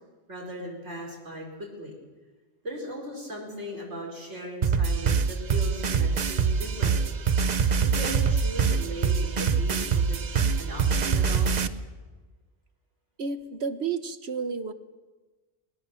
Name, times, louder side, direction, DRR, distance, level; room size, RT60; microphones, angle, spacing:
voice 1, 0.3-1.9 2.6-7.2 7.8-10.2 10.6-11.6, equal, 85° right, -1 dB, 5.1 m, -38 dB
sound 1, 4.6-11.7, right 6 dB, 45° right, 0.8 m, -24 dB
voice 2, 13.2-14.7, right 5 dB, 65° right, 9 dB, 1.2 m, -31 dB
20.5 x 18.5 x 6.9 m, 1.3 s
omnidirectional pair, 1.2 m